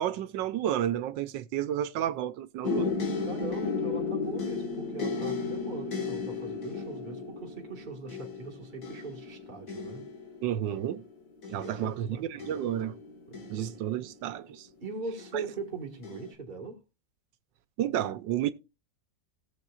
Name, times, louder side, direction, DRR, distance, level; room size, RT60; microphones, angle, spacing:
voice 1, 0.0-2.9 10.4-11.0 11.5-13.0 13.5-14.7 15.3-15.4 17.8-18.5, right 11 dB, 80° right, 1.4 m, -31 dB
sound 1, 2.6-14.5 15.2-15.6 16.0-16.3, left 4 dB, 55° left, 2.0 m, -35 dB
voice 2, 3.2-10.0 11.5-12.6 13.3-13.7 14.8-16.8, right 4 dB, 25° right, 1.8 m, -41 dB
18.0 x 7.3 x 2.4 m
omnidirectional pair, 2.0 m